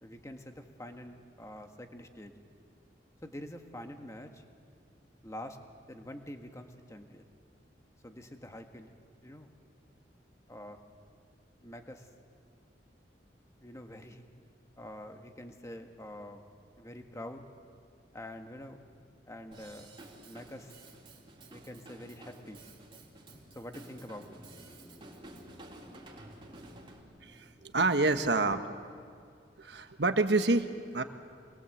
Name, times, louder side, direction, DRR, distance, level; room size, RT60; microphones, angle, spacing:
voice 1, 0.0-2.3 3.2-4.4 5.2-5.6 5.9-7.3 8.0-9.5 10.5-10.8 11.6-12.1 13.6-14.3 14.8-16.4 16.8-17.5 18.1-18.8 19.3-19.9 20.3-20.7 21.5-22.6 23.5-24.3, left 1 dB, 20° left, 5 dB, 1.5 m, -46 dB
Drum kit / Drum, 19.5-27.0, right 2 dB, 30° right, 3.4 m, -52 dB
sound 1, 23.1-28.1, equal, ahead, 2.1 m, -57 dB
voice 2, 27.2-28.6 29.6-31.0, right 3 dB, 65° right, 8 dB, 1.3 m, -28 dB
26.5 x 20.5 x 7.9 m, 2.2 s
head